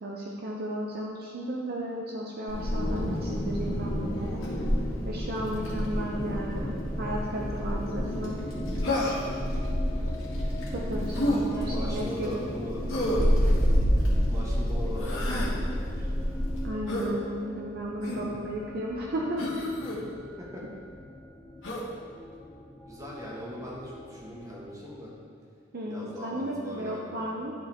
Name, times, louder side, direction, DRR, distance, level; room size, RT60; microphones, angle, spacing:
voice 1, 0.0-4.4 5.1-8.3 10.7-12.5 16.6-19.7 25.7-27.5, equal, 50° right, -2 dB, 0.6 m, -34 dB
Wind, 2.5-16.7, equal, 85° left, 2.0 m, -29 dB
sound 1, 5.4-25.2, left 1 dB, 10° left, 0.5 m, -42 dB
Human voice, 8.8-9.4 11.1-11.4 12.9-13.3 14.9-15.5 16.9-17.1 18.0-18.3 19.4-20.0 21.6-21.9, left 1 dB, 70° left, 2.0 m, -30 dB
voice 2, 9.6-10.2 11.0-12.8 13.3-13.7 14.1-16.1 19.8-19.9 20.4-20.7 22.9-25.1 25.8-27.3, left 1 dB, 15° right, -5 dB, 1.6 m, -40 dB
11.5 x 4.7 x 3.5 m, 2.2 s
head